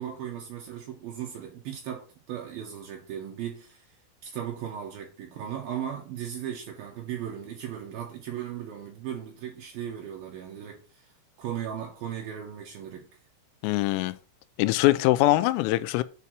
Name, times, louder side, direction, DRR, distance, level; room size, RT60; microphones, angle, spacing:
voice 1, 0.0-4.0 4.2-11.1 11.4-13.1, right 9 dB, 85° right, 2.1 m, -37 dB
voice 2, 13.6-14.1 14.6-16.0, left 17 dB, 85° left, 3.2 m, -22 dB
8.3 x 4.2 x 6.1 m
omnidirectional pair, 5.9 m